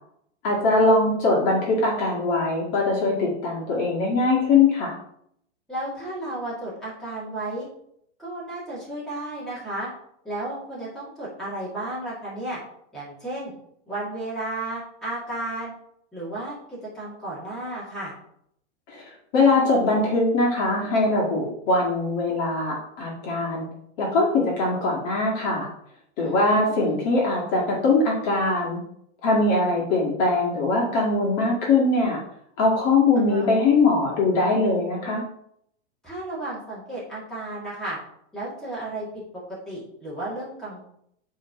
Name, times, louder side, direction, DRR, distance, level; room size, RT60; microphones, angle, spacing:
voice 1, 0.4-4.9 18.9-19.0 19.3-23.7 24.0-25.7 26.2-28.8 29.2-32.2 32.6-35.2, left 3 dB, 35° left, -3 dB, 2.0 m, -21 dB
voice 2, 5.7-7.7 8.2-9.9 10.2-12.6 12.9-13.5 13.9-15.7 16.1-18.1 26.2-27.0 33.2-33.5 36.0-38.0 38.3-40.8, right 1 dB, ahead, -9 dB, 2.1 m, -33 dB
8.3 x 3.7 x 4.8 m, 0.72 s
supercardioid pair, 170°, 36 cm